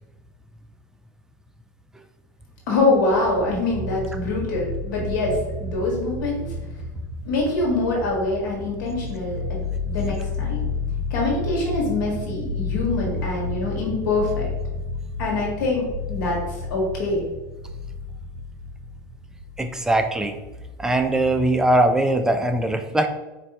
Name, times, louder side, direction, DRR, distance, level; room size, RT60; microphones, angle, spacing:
voice 1, 2.7-6.5 7.2-10.7 11.1-14.5 15.2-17.2, left 2 dB, 90° left, -2 dB, 1.3 m, -24 dB
sound 1, 2.9-20.1, left 3 dB, 75° right, 0.5 m, -31 dB
voice 2, 19.6-20.4 20.8-23.1, right 1 dB, 5° right, 6 dB, 0.3 m, -21 dB
4.4 x 2.6 x 2.8 m, 1.1 s
supercardioid pair, 125°, 10 cm